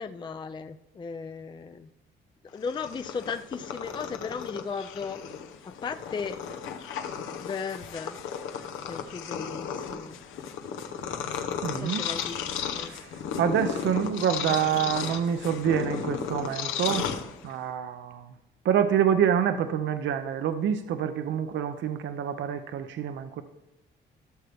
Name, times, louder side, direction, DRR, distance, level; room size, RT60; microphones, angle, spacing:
voice 1, 0.0-1.9 2.5-5.2 5.7-6.4 7.4-8.2 8.9-10.2 11.8-12.9, left 5 dB, 25° left, 10 dB, 0.4 m, -36 dB
Purr, 2.6-17.7, left 7 dB, 85° left, 0.8 m, -34 dB
voice 2, 11.6-12.1 12.8-17.1 17.4-18.3 18.6-23.4, right 8 dB, 70° right, 9 dB, 0.6 m, -27 dB
12.5 x 6.6 x 3.4 m, 0.95 s
cardioid pair, 90°, 20 cm